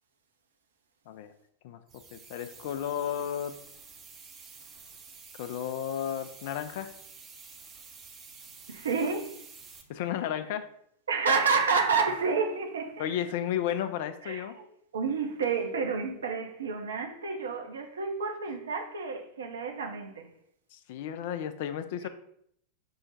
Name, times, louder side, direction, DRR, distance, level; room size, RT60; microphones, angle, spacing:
sound 1, 1.9-9.8, right 5 dB, 25° right, 0.5 m, -50 dB
voice 1, 2.1-3.6 5.4-6.9 9.9-10.7 13.0-14.6 20.7-22.1, left 10 dB, 50° left, 0.3 m, -33 dB
voice 2, 8.7-9.4 11.1-13.2 14.2-14.7 14.9-20.3 22.0-22.1, right 5 dB, 65° right, 0.6 m, -30 dB
5.5 x 2.1 x 3.8 m
figure-of-eight pair, 90°, 0 cm